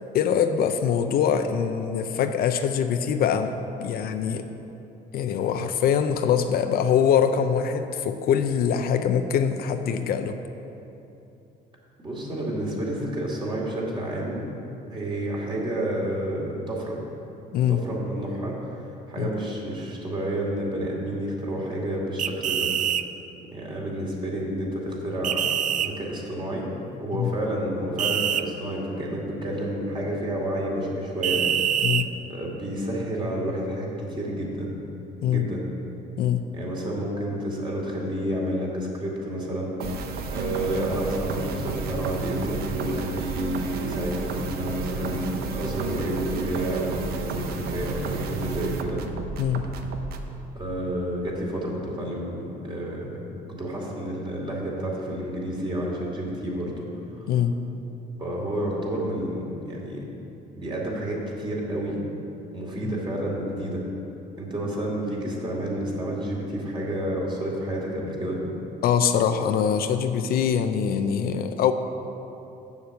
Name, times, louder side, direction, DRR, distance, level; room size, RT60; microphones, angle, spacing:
voice 1, 0.1-3.5 3.8-4.5 5.1-10.4 17.5-17.8 19.2-19.3 27.1-27.3 31.8-32.1 35.2-35.5 36.2-36.4 49.4-49.6 57.3-57.5 62.8-62.9 68.8-71.7, left 8 dB, 65° left, 8 dB, 0.6 m, -23 dB
voice 2, 12.0-14.5 14.9-17.0 17.7-18.7 19.1-22.7 23.5-25.5 25.7-26.7 27.0-31.4 32.3-34.7 35.3-35.6 36.5-49.0 50.5-56.9 57.2-57.3 58.2-60.0 60.6-62.0 62.5-63.8 64.4-68.4, right 1 dB, 30° right, -3 dB, 2.5 m, -30 dB
sound 1, 22.2-23.0 25.2-25.9 28.0-28.4 31.2-32.1, right 10 dB, 50° right, 0.4 m, -24 dB
sound 2, 39.8-50.3, right 4 dB, 65° right, 0.8 m, -32 dB
7.2 x 6.8 x 7.8 m, 2.9 s
cardioid pair, 110°, 17 cm